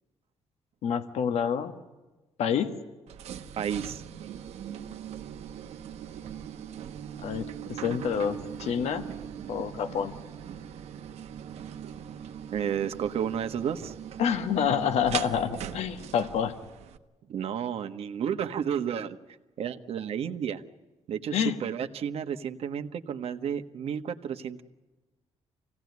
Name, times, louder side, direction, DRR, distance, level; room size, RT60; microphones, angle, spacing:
voice 1, 0.8-1.7 2.4-2.7 7.2-9.0 9.5-10.1 14.2-16.5 21.3-21.6, left 8 dB, 80° left, 9 dB, 1.5 m, -28 dB
sound 1, 3.1-17.0, right 9 dB, 85° right, 1.2 m, -40 dB
voice 2, 3.6-4.0 12.5-13.9 17.3-19.2 19.6-20.6 21.1-24.6, right 8 dB, 65° right, 8 dB, 1.4 m, -31 dB
25.5 x 17.5 x 9.5 m, 1.2 s
cardioid pair, 140°, 11 cm